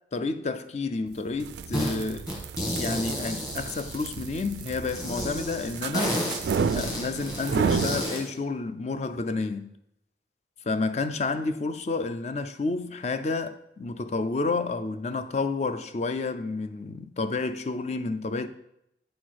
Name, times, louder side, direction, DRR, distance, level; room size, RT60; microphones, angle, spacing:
voice 1, 0.1-2.3 2.8-6.3 6.7-9.7 10.6-18.5, left 3 dB, 40° left, 0.4 m, -30 dB
sound 1, 1.3-8.0, right 5 dB, 70° right, 0.3 m, -31 dB
sound 2, 1.7-2.0 2.3-4.4 4.9-8.3, equal, 20° left, 1.7 m, -32 dB
9.0 x 4.4 x 4.6 m
head